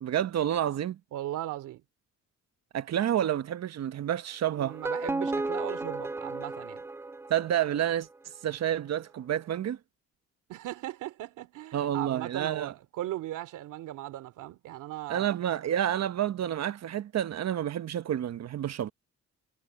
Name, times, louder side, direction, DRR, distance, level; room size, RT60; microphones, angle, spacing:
voice 1, 0.0-1.0 2.7-4.8 7.3-8.1 8.4-9.8 11.7-12.7 15.1-18.9, right 10 dB, 60° right, 1.1 m, -29 dB
voice 2, 1.1-1.8 4.6-6.8 10.5-15.3, right 14 dB, 85° right, 2.7 m, -38 dB
sound 1, 4.6-7.8, right 3 dB, 10° right, 0.4 m, -34 dB
cardioid pair, 90°, 30 cm